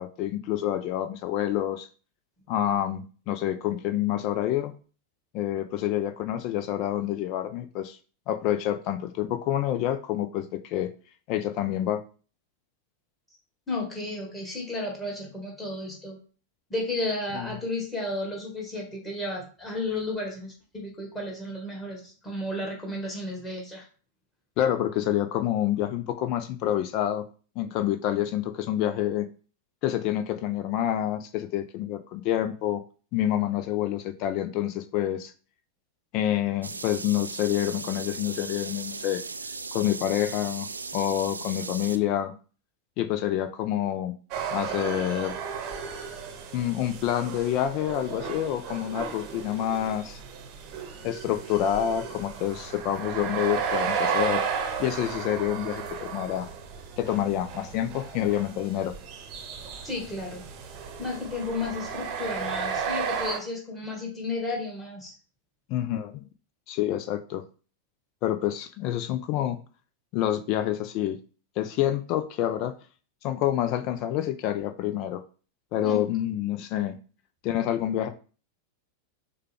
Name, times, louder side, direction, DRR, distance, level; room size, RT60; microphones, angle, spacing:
voice 1, 0.0-1.9 2.5-4.7 5.3-8.0 8.3-10.9 11.3-12.0 17.3-17.5 24.6-27.2 27.6-29.3 29.8-32.8 33.1-35.3 36.1-39.2 39.7-42.3 43.0-44.1 44.5-45.4 46.5-50.2 51.0-54.4 54.8-56.5 57.0-58.9 65.7-66.2 66.7-67.4 68.2-69.6 70.1-71.2 71.6-72.7 73.2-75.2 75.7-77.0 77.4-78.1, left 12 dB, 40° left, 9 dB, 0.5 m, -27 dB
voice 2, 13.7-16.2 16.7-23.9 59.8-60.5 61.0-65.1 75.8-76.0, left 2 dB, 15° left, -2 dB, 1.9 m, -33 dB
sound 1, 36.6-42.0, right 4 dB, 80° right, 0.3 m, -37 dB
sound 2, 44.3-63.4, right 6 dB, 40° right, 0.8 m, -34 dB
6.5 x 2.3 x 3.5 m, 0.37 s
figure-of-eight pair, 90°, 0 cm